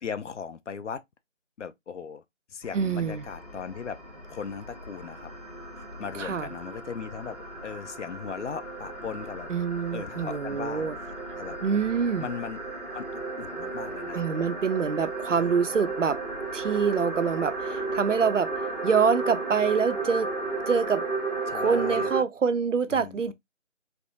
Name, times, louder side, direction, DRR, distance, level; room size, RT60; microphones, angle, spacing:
voice 1, 0.0-1.0 1.6-2.2 2.5-4.0 4.3-5.3 6.0-7.4 7.6-9.5 9.9-11.6 12.2-12.6 12.9-14.2 15.3-15.5 21.5-22.3 22.9-23.3, left 6 dB, 70° left, 0.5 m, -38 dB
sound 1, 2.6-22.2, right 3 dB, ahead, 0.5 m, -34 dB
voice 2, 2.7-3.3 6.2-6.5 9.5-11.0 11.6-12.3 14.1-16.2 16.5-18.5 18.8-20.3 20.7-21.0 21.5-23.3, right 6 dB, 75° right, 0.5 m, -26 dB
3.3 x 2.0 x 2.7 m
figure-of-eight pair, 165°, 38 cm